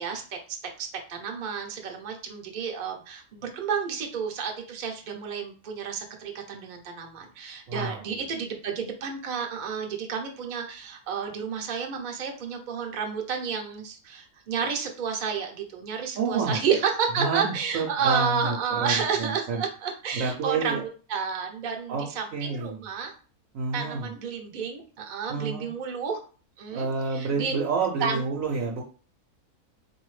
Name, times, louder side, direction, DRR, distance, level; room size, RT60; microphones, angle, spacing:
voice 1, 0.0-22.2 22.5-23.1 23.7-26.2 26.6-27.5 28.0-28.3, right 6 dB, 45° right, 2 dB, 0.7 m, -31 dB
voice 2, 7.7-8.2 16.2-16.6 17.2-19.6 20.1-20.8 21.9-22.0 22.3-22.8 23.5-24.1 25.3-25.7 26.7-28.8, right 4 dB, 70° right, -1 dB, 0.9 m, -29 dB
4.0 x 2.7 x 3.1 m, 0.39 s
omnidirectional pair, 1.6 m